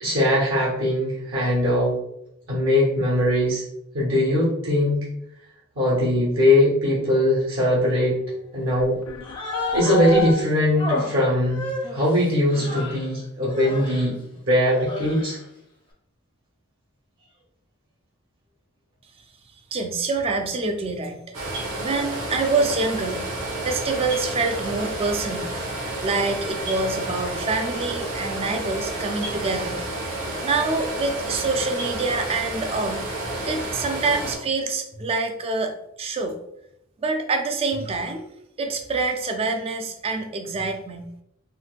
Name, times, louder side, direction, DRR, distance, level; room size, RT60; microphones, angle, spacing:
voice 1, 0.0-1.9 2.5-3.6 3.9-5.0 5.8-8.2 8.5-9.0 9.7-11.6 11.9-14.1 14.5-15.4, left 1 dB, 65° right, -6 dB, 1.0 m, -20 dB
sound 1, 8.1-8.2 8.7-11.0, left 5 dB, 75° left, 0.3 m, -29 dB
Human voice, 9.2-10.4 10.8-13.1 13.5-14.1 14.7-15.4, left 2 dB, 20° left, 0.5 m, -32 dB
voice 2, 19.7-21.2 21.8-23.2 23.6-25.4 26.0-29.9 30.4-33.0 33.4-36.4 37.0-38.2 38.6-41.1, right 3 dB, 25° right, 5 dB, 0.3 m, -26 dB
sound 2, 21.3-34.3, right 2 dB, 90° right, 1.0 m, -30 dB
3.9 x 2.2 x 2.4 m, 0.79 s
head